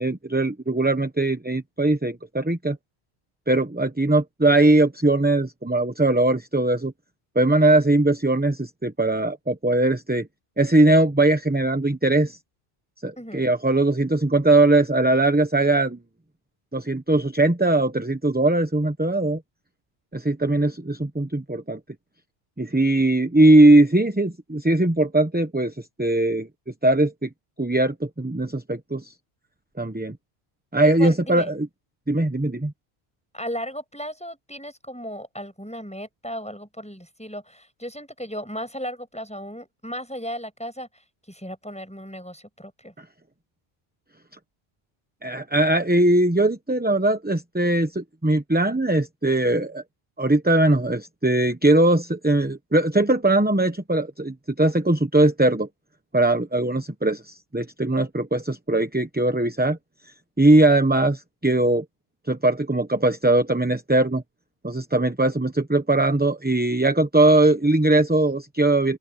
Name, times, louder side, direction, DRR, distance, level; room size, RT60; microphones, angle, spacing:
voice 1, 0.0-2.8 3.5-6.9 7.3-10.3 10.6-12.4 13.0-16.0 16.7-19.4 20.1-21.8 22.6-26.5 26.8-27.3 27.6-29.1 29.8-30.2 30.7-31.7 32.1-32.7 45.2-49.8 50.2-55.7 56.1-59.8 60.4-61.8 62.3-64.2 64.6-69.0, right 2 dB, 10° right, 0.9 m, -20 dB
voice 2, 30.8-31.5 33.3-42.9, equal, 5° left, 6.0 m, -36 dB
open air
omnidirectional pair, 1.1 m